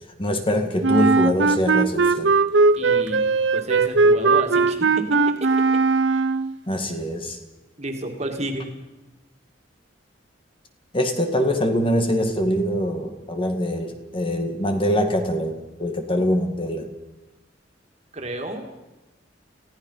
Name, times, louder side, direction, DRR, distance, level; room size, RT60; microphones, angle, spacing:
voice 1, 0.2-2.3 6.7-7.4 10.9-16.9, equal, 30° left, 5 dB, 2.0 m, -23 dB
Wind instrument woodwind instrument, 0.8-6.5, right 4 dB, 75° right, 0.8 m, -19 dB
voice 2, 2.8-3.3 3.5-5.8 6.1-6.2 7.8-8.7 18.1-18.6, right 1 dB, 35° right, 4 dB, 2.4 m, -31 dB
29.5 x 16.0 x 5.7 m, 1.1 s
head